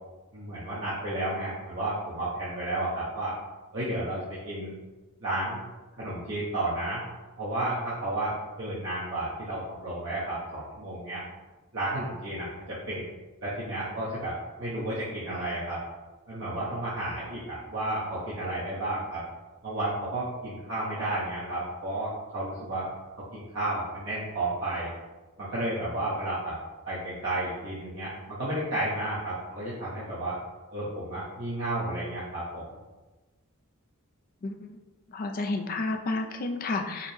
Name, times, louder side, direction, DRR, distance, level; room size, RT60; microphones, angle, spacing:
voice 1, 0.3-3.4 3.7-4.8 5.2-5.6 6.0-7.0 7.4-11.2 11.7-13.0 13.4-15.8 16.3-19.2 19.6-22.9 23.3-24.9 25.4-26.6 26.9-30.4 30.7-32.8, right 1 dB, 60° right, -9 dB, 1.0 m, -32 dB
voice 2, 34.4-34.7 35.1-37.1, left 2 dB, 40° left, 4 dB, 0.3 m, -31 dB
5.0 x 2.1 x 3.2 m, 1.2 s
head